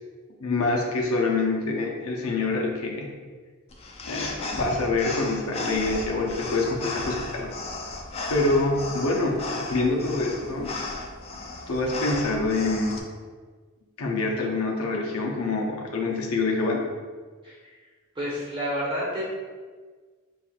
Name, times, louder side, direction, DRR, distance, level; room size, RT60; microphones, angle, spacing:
voice 1, 0.4-3.1 4.0-7.6 8.3-9.4 9.7-10.7 11.7-13.0 14.0-16.8, left 3 dB, 80° left, -1 dB, 0.6 m, -26 dB
sound 1, 3.7-13.0, left 2 dB, 30° left, 0.3 m, -35 dB
voice 2, 17.4-17.8 18.1-19.3, equal, 25° right, -6 dB, 1.1 m, -30 dB
5.5 x 2.4 x 2.4 m, 1.5 s
head